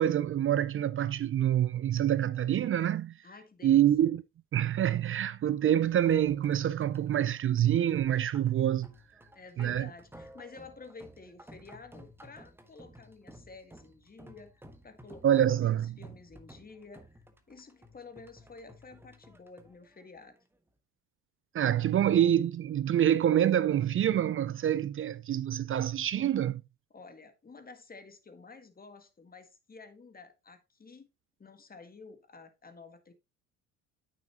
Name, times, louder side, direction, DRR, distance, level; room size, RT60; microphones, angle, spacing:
voice 1, 0.0-3.1 3.6-4.2 4.5-8.9 9.6-9.9 15.2-15.9 21.5-26.6, right 11 dB, 35° right, 0.5 m, -26 dB
voice 2, 3.2-3.9 9.3-20.4 26.9-31.1 31.4-33.1, left 4 dB, 25° left, 1.6 m, -51 dB
sound 1, 5.8-20.7, equal, 5° right, 1.4 m, -54 dB
8.7 x 6.3 x 2.9 m
supercardioid pair, 70°, 37 cm